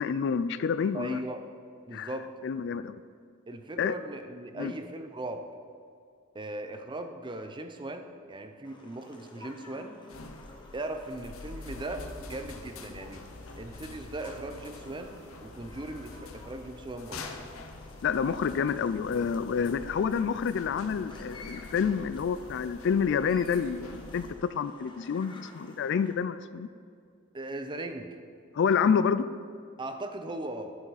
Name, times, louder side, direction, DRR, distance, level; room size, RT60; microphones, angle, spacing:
voice 1, 0.0-1.2 1.9-2.1 2.4-2.9 3.8-3.9 4.6-4.7 18.0-26.7 28.5-29.3, left 6 dB, 55° left, 14 dB, 0.3 m, -28 dB
voice 2, 0.9-1.4 1.9-2.3 3.5-5.5 6.3-10.0 10.7-13.2 13.6-17.3 27.3-28.2 29.8-30.8, right 2 dB, 20° right, 7 dB, 0.6 m, -38 dB
sound 1, 8.6-26.2, left 2 dB, 25° left, 1.0 m, -52 dB
sound 2, 10.1-24.3, left 3 dB, 80° left, 0.9 m, -46 dB
11.5 x 8.6 x 4.1 m, 2.4 s
head